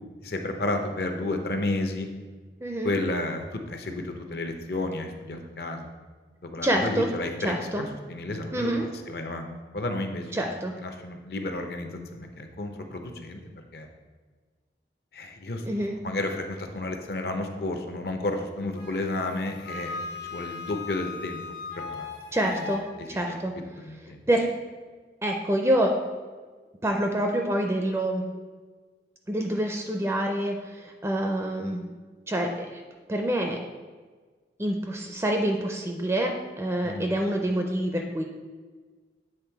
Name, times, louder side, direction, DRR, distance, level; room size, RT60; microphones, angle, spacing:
voice 1, 0.2-2.1 2.8-5.9 6.5-10.3 10.8-13.4 13.7-13.9 15.1-20.0 20.3-21.4 21.9-22.1 22.4-22.6 23.3-23.4 23.7-24.2 36.8-37.1, left 2 dB, 60° left, 5 dB, 0.7 m, -32 dB
voice 2, 2.6-2.9 6.6-7.1 7.4-7.8 8.5-8.9 10.3-10.7 15.7-16.0 22.3-22.8 23.1-23.5 24.3-24.5 25.2-25.9 26.8-28.2 29.3-31.8 32.3-32.8 33.1-33.6 34.6-38.2, right 1 dB, 15° right, 2 dB, 0.4 m, -26 dB
Wind instrument woodwind instrument, 18.8-22.9, left 5 dB, 80° left, 1.4 m, -38 dB
7.9 x 3.4 x 4.6 m, 1.4 s
head